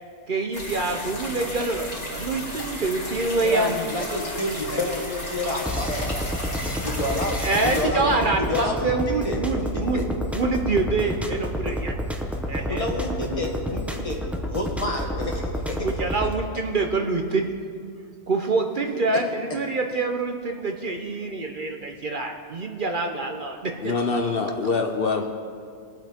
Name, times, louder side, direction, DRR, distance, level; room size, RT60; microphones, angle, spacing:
voice 1, 0.3-3.7 7.4-10.0 10.3-12.0 12.5-12.9 15.8-17.5 18.3-23.9, right 3 dB, 50° right, 4 dB, 0.9 m, -26 dB
sound 1, 0.5-7.8, left 1 dB, 75° left, 2.9 m, -34 dB
voice 2, 3.4-6.2 6.8-7.4 7.6-10.1 11.6-11.7 12.7-15.9, left 1 dB, 30° left, 0 dB, 1.7 m, -29 dB
sound 2, 5.6-16.3, equal, ahead, 0.7 m, -30 dB
voice 3, 23.8-25.3, left 4 dB, 55° left, 4 dB, 0.9 m, -24 dB
21.5 x 8.2 x 3.6 m, 2.2 s
omnidirectional pair, 1.2 m